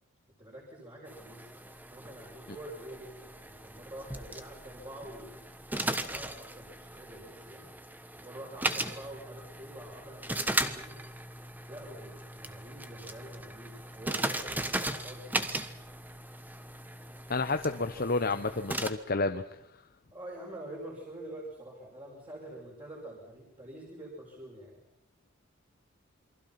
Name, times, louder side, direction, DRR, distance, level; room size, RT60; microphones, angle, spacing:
voice 1, 0.4-5.4 5.8-7.7 8.2-11.0 11.7-15.5 20.1-24.8, right 1 dB, 25° right, -4 dB, 6.3 m, -46 dB
sound 1, 1.1-18.9, right 1 dB, 10° right, 1.2 m, -37 dB
voice 2, 17.3-19.4, left 3 dB, 45° left, 7 dB, 0.9 m, -30 dB
28.5 x 23.5 x 5.9 m, 0.77 s
head